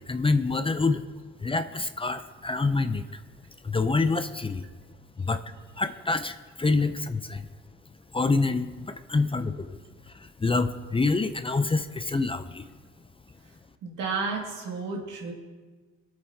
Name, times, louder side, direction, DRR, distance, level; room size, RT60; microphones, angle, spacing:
voice 1, 0.1-1.0 1.4-3.0 3.6-4.6 5.2-5.4 5.8-7.4 8.1-9.8 10.4-12.6, left 3 dB, 20° left, 10 dB, 0.6 m, -26 dB
voice 2, 13.8-15.3, right 4 dB, 85° right, 0 dB, 2.2 m, -32 dB
23.0 x 8.0 x 2.8 m, 1.4 s
cardioid pair, 90°, 30 cm